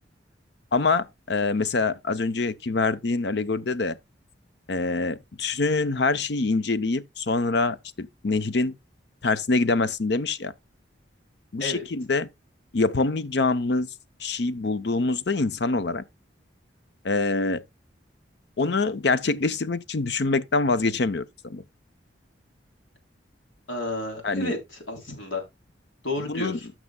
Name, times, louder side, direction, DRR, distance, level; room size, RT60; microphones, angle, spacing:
voice 1, 0.7-4.0 4.7-8.7 9.2-10.5 11.5-12.3 12.7-13.9 14.2-16.0 17.0-17.6 18.6-21.6 24.2-24.5 26.3-26.6, left 3 dB, 60° left, 0.6 m, -25 dB
voice 2, 23.7-25.4 26.0-26.7, left 2 dB, 85° left, 3.5 m, -31 dB
15.0 x 6.1 x 2.2 m
head